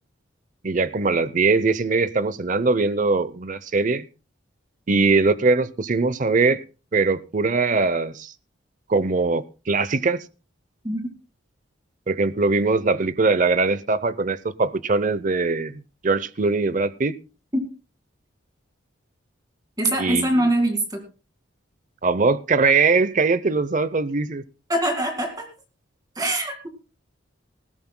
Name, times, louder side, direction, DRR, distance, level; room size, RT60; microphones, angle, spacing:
voice 1, 0.6-4.1 4.9-6.6 6.9-8.3 8.9-10.2 12.1-17.2 20.0-20.5 22.0-24.4, right 3 dB, 40° right, 0.6 m, -21 dB
voice 2, 19.8-21.0 24.7-25.5 26.2-26.7, right 1 dB, 20° right, 2.0 m, -23 dB
19.5 x 15.5 x 2.2 m
head